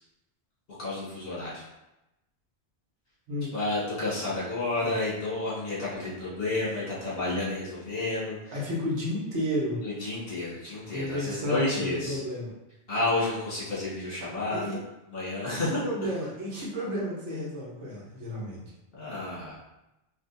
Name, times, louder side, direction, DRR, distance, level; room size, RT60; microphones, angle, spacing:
voice 1, 0.8-1.6 3.5-8.4 9.8-12.2 12.9-14.8 15.1-15.7 19.0-19.6, left 2 dB, 55° left, -8 dB, 1.7 m, -31 dB
voice 2, 8.5-9.8 10.5-10.6 10.9-12.5 14.5-14.8 15.5-18.6, equal, 90° right, -5 dB, 1.4 m, -32 dB
4.7 x 2.6 x 2.6 m, 0.94 s
omnidirectional pair, 1.2 m